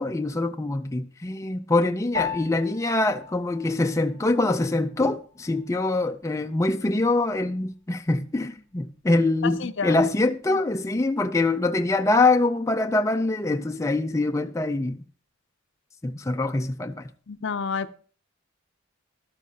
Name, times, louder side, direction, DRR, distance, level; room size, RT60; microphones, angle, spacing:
voice 1, 0.0-15.0 16.0-17.1, left 2 dB, 15° left, 0.4 m, -24 dB
Piano, 2.1-11.8, left 6 dB, 75° right, 1.4 m, -41 dB
voice 2, 9.4-9.9 10.5-10.6 17.3-17.9, left 5 dB, 60° left, 0.6 m, -30 dB
13.0 x 12.0 x 2.8 m
head